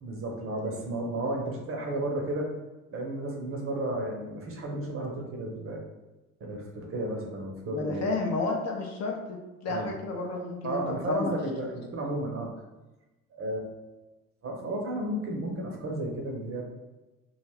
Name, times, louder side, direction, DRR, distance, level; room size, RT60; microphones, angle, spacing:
voice 1, 0.0-2.5 2.9-5.8 6.4-8.1 9.7-9.9 10.6-12.5 13.3-13.7 14.4-16.6, right 1 dB, 30° right, 0 dB, 0.7 m, -33 dB
voice 2, 7.7-11.6, left 3 dB, 40° left, 0 dB, 0.5 m, -31 dB
2.4 x 2.2 x 3.3 m, 1.1 s
figure-of-eight pair, 50°, 43 cm